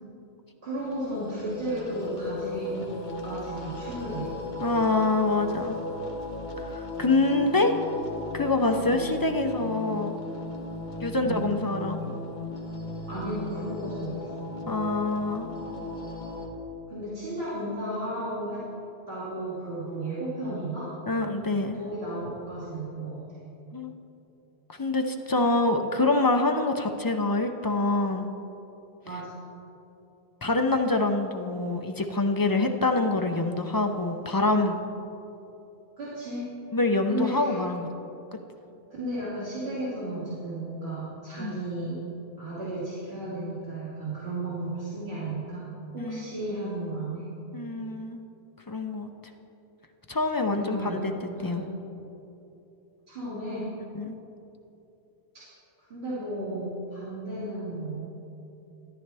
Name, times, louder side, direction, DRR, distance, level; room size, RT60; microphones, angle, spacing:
voice 1, 0.6-4.3 7.1-7.5 8.7-9.0 11.2-11.4 13.1-14.3 16.9-18.6 19.1-20.9 21.7-23.2 29.0-29.4 36.0-36.5 37.1-37.7 38.9-42.0 42.4-45.6 45.9-47.3 50.5-51.0 51.3-51.7 53.1-53.7 55.3-55.5 55.9-58.1, right 1 dB, 85° right, -11 dB, 2.7 m, -34 dB
sound 1, 0.8-16.5, left 2 dB, 50° left, 1.2 m, -36 dB
voice 2, 4.6-5.8 6.6-7.7 8.3-10.1 11.0-12.2 14.7-15.5 21.1-21.8 23.7-23.9 24.7-28.3 30.4-34.8 36.7-37.9 41.4-41.6 46.0-46.2 47.5-48.2 48.7-49.1 50.1-51.1 51.4-51.6 53.9-54.2, left 2 dB, 30° left, 5 dB, 0.4 m, -25 dB
13.5 x 10.5 x 3.4 m, 2.9 s
omnidirectional pair, 1.0 m